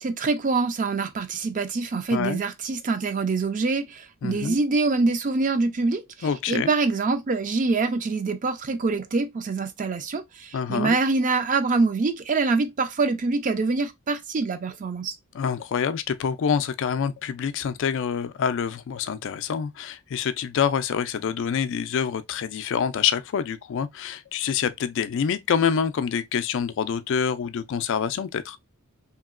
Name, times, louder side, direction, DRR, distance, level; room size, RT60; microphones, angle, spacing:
voice 1, 0.0-15.1, right 3 dB, 35° right, 0.4 m, -25 dB
voice 2, 4.2-4.6 6.2-6.7 10.5-11.0 15.3-28.6, left 7 dB, 55° left, 0.3 m, -26 dB
2.9 x 2.7 x 2.4 m
head